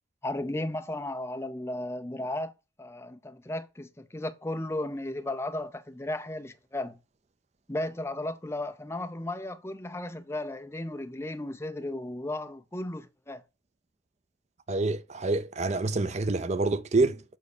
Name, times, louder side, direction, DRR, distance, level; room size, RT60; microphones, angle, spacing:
voice 1, 0.2-2.5 2.8-7.0 7.7-13.4, left 1 dB, 15° left, 0.6 m, -35 dB
voice 2, 14.7-17.2, right 3 dB, 35° right, 0.5 m, -27 dB
7.3 x 5.4 x 6.5 m
head